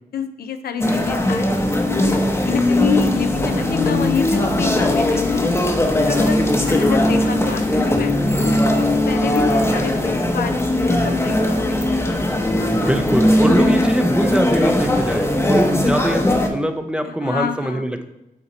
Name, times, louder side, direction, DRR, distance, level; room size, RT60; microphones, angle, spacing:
voice 1, 0.1-5.5 6.1-6.4 6.7-8.6 9.0-11.9 12.6-13.0 17.2-17.9, left 7 dB, 80° left, 8 dB, 0.5 m, -27 dB
sound 1, 0.8-16.5, left 1 dB, 15° left, 0.8 m, -19 dB
voice 2, 12.7-18.1, right 1 dB, 5° right, 7 dB, 0.5 m, -22 dB
8.3 x 2.8 x 4.0 m, 0.92 s
cardioid pair, 80°, 16 cm